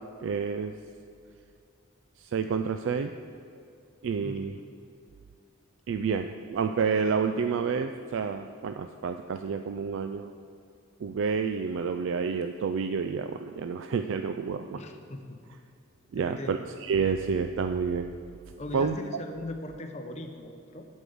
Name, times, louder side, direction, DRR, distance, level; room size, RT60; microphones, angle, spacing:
voice 1, 0.2-0.7 2.2-3.1 4.0-4.5 5.9-10.3 11.0-14.8 16.1-18.1 18.7-19.0, right 5 dB, 60° right, 7 dB, 0.3 m, -29 dB
voice 2, 4.2-4.6 14.7-15.4 16.2-16.6 18.6-20.9, left 1 dB, 30° left, 5 dB, 0.7 m, -40 dB
8.2 x 5.5 x 7.7 m, 2.4 s
head